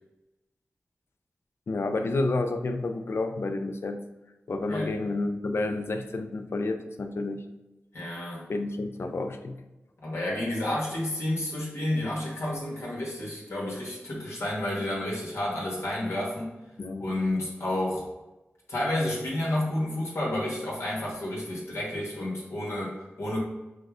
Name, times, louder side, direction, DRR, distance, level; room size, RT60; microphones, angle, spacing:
voice 1, 1.7-4.0 4.5-7.5 8.5-9.6 16.8-17.1, left 2 dB, 65° left, 7 dB, 0.4 m, -30 dB
voice 2, 7.9-8.4 10.0-16.5 17.0-18.1 18.7-23.4, left 1 dB, 80° left, -4 dB, 1.2 m, -30 dB
6.1 x 2.1 x 2.4 m, 1.0 s
cardioid pair, 40°, 5 cm